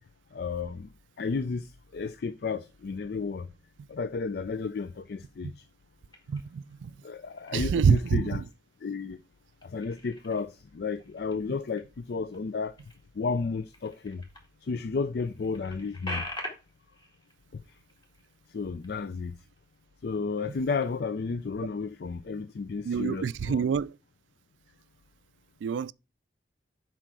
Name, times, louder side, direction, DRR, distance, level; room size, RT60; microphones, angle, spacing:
voice 1, 0.3-0.9 1.2-3.5 3.9-5.7 7.0-8.4 8.8-9.2 9.6-12.8 13.1-14.2 14.6-16.3 17.5-17.6 18.5-19.4 20.0-23.6, left 4 dB, 60° left, 0.4 m, -32 dB
sound 1, 6.1-6.8 7.2-7.9 8.3-9.0 9.3-14.5 14.9-15.0 15.2-19.2 19.5-19.7 20.2-21.2, left 1 dB, 25° left, 2.1 m, -45 dB
voice 2, 6.3-6.9 7.5-8.3 22.8-23.9 25.6-25.9, right 6 dB, 90° right, 0.3 m, -26 dB
7.7 x 4.6 x 4.6 m
head